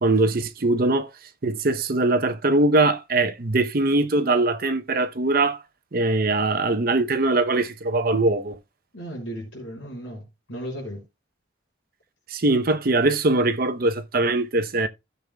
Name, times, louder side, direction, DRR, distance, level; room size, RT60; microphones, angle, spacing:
voice 1, 0.0-1.1 1.4-5.6 5.9-8.6 12.3-14.9, right 2 dB, 50° right, 0.7 m, -21 dB
voice 2, 8.9-11.1, equal, 80° left, 4.0 m, -35 dB
16.0 x 6.8 x 2.3 m
head